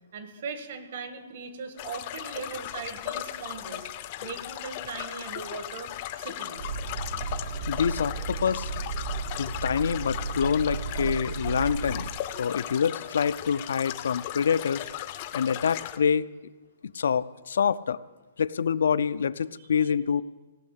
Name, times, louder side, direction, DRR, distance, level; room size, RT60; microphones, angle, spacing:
voice 1, 0.1-3.9 4.2-5.9 6.2-6.7 19.6-19.9, right 5 dB, 50° right, 8 dB, 1.6 m, -39 dB
sound 1, 1.8-16.0, left 13 dB, 30° left, 0.5 m, -37 dB
sound 2, 6.6-12.1, right 5 dB, 70° right, 2.1 m, -34 dB
voice 2, 7.7-8.7 9.4-12.1 12.4-14.8 15.3-16.3 16.9-18.0 18.4-20.2, left 7 dB, 80° left, 15 dB, 0.4 m, -26 dB
17.0 x 6.4 x 8.2 m, 1.2 s
hypercardioid pair, 175°, 0 cm